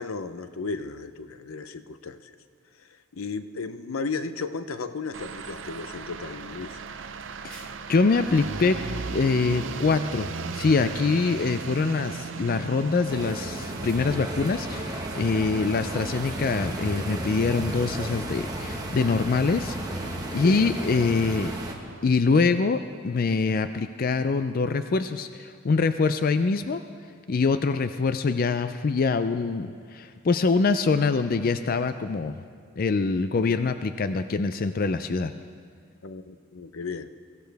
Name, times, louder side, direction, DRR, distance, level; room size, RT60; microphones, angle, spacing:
voice 1, 0.0-2.4 2.8-6.8 20.4-20.6 36.0-37.1, left 4 dB, 80° left, 10 dB, 0.7 m, -34 dB
sound 1, 5.1-22.1, right 4 dB, 60° right, 0.6 m, -38 dB
voice 2, 7.4-8.8 9.1-21.5 22.0-26.8 27.3-32.4 32.8-35.3, left 4 dB, 45° left, 10 dB, 0.4 m, -24 dB
sound 2, 13.1-21.7, right 1 dB, 20° right, 1.4 m, -33 dB
23.5 x 15.0 x 3.4 m, 2.1 s
head